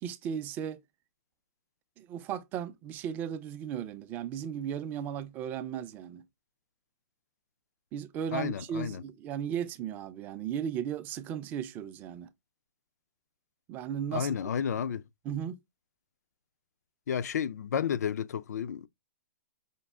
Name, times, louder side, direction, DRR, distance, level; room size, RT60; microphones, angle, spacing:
voice 1, 0.0-0.8 2.0-6.2 7.9-12.3 13.7-14.4 15.3-15.6, right 9 dB, 20° right, 0.3 m, -36 dB
voice 2, 8.3-9.0 14.1-15.0 17.1-18.9, left 8 dB, 80° left, 0.4 m, -31 dB
5.2 x 2.3 x 3.4 m
hypercardioid pair, 155°, 9 cm